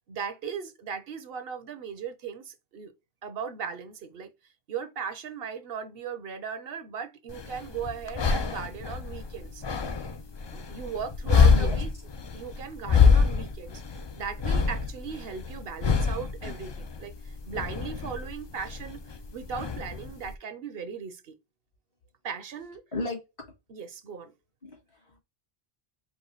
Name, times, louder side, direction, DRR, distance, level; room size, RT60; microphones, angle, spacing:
voice 1, 0.1-2.9 3.2-4.3 4.7-9.6 10.5-11.9 12.3-13.8 14.2-19.0 19.3-21.4 22.2-22.8 23.7-24.3, right 6 dB, 70° right, 0.9 m, -37 dB
sound 1, 7.3-20.3, left 5 dB, 45° left, 0.3 m, -26 dB
voice 2, 22.9-23.2 24.6-25.2, left 3 dB, 60° left, 2.3 m, -34 dB
4.9 x 2.2 x 3.8 m
omnidirectional pair, 1.0 m